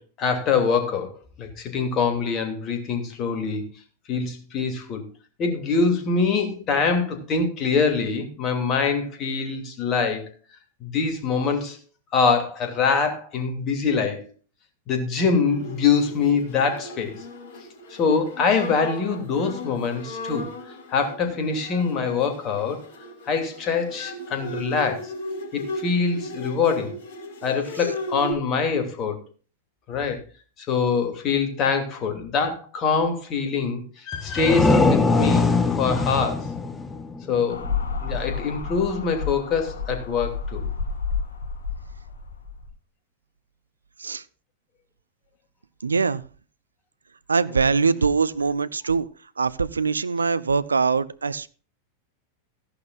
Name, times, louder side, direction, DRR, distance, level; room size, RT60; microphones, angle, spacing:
voice 1, 0.2-1.1 1.4-3.7 4.1-5.0 5.4-10.3 10.8-11.8 12.1-14.2 14.9-17.2 18.0-20.5 20.9-22.8 23.3-25.1 25.5-27.0 27.4-29.2 29.9-30.2 30.7-36.5 37.3-37.7 38.0-40.6, left 5 dB, 35° left, 5 dB, 2.7 m, -24 dB
Bowed string instrument, 15.4-28.3, left 1 dB, 50° left, 3.7 m, -36 dB
sound 1, 34.1-37.7, left 3 dB, 10° left, 1.2 m, -22 dB
sound 2, 37.5-42.7, left 5 dB, 65° left, 1.7 m, -30 dB
voice 2, 45.8-46.2 47.3-49.1 49.4-51.5, right 5 dB, 75° right, 16 dB, 0.5 m, -22 dB
14.5 x 11.5 x 2.5 m, 0.37 s
figure-of-eight pair, 90°, 0 cm